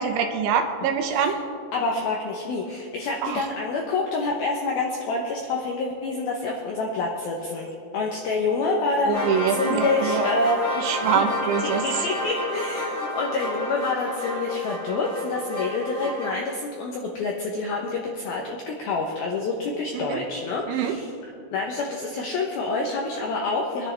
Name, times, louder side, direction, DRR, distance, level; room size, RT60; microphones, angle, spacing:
voice 1, 0.0-1.4 3.2-3.5 9.1-10.3 10.8-11.9 20.1-20.2 20.7-21.0, right 7 dB, 80° right, 5 dB, 3.2 m, -24 dB
voice 2, 1.7-10.6 11.2-11.3 11.6-21.1 21.5-23.9, left 3 dB, 80° left, 0 dB, 2.1 m, -27 dB
sound 1, 9.1-16.4, equal, 20° left, 2.6 m, -30 dB
25.0 x 10.5 x 3.4 m, 2.5 s
omnidirectional pair, 5.7 m